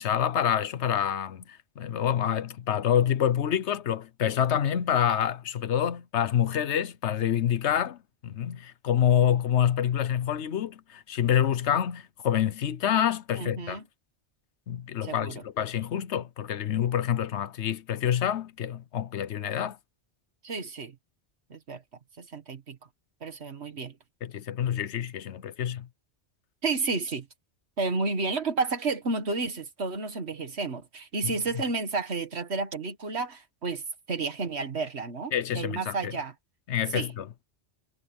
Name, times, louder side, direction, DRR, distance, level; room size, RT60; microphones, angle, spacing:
voice 1, 0.0-13.8 14.7-19.8 24.2-25.9 31.2-31.6 35.3-36.1 36.7-37.3, left 9 dB, 90° left, 1.1 m, -27 dB
voice 2, 13.3-13.8 15.0-15.4 20.4-21.0 21.5-21.8 22.2-22.8 23.2-24.0 26.6-27.3 27.8-36.3 36.9-37.1, right 3 dB, 75° right, 2.0 m, -31 dB
omnidirectional pair, 1.1 m